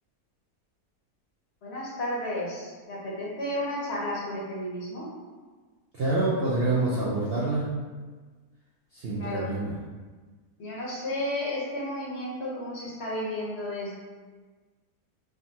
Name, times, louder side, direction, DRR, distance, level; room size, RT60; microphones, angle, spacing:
voice 1, 1.6-5.1 9.2-9.5 10.6-14.0, left 1 dB, 50° left, -5 dB, 0.9 m, -32 dB
voice 2, 5.9-7.7 8.9-9.7, right 2 dB, 75° right, -8 dB, 0.5 m, -26 dB
3.5 x 2.2 x 2.7 m, 1.4 s
omnidirectional pair, 1.6 m